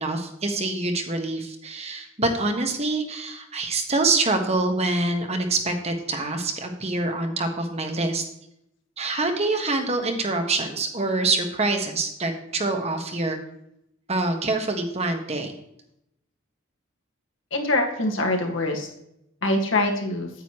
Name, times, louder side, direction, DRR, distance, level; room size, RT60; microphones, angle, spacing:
voice 1, 0.0-8.2 9.0-13.4 14.1-15.5, right 2 dB, 30° right, 5 dB, 1.4 m, -25 dB
voice 2, 17.5-18.9 19.4-20.3, left 2 dB, 65° left, 1 dB, 1.9 m, -24 dB
9.3 x 9.2 x 3.1 m, 0.79 s
head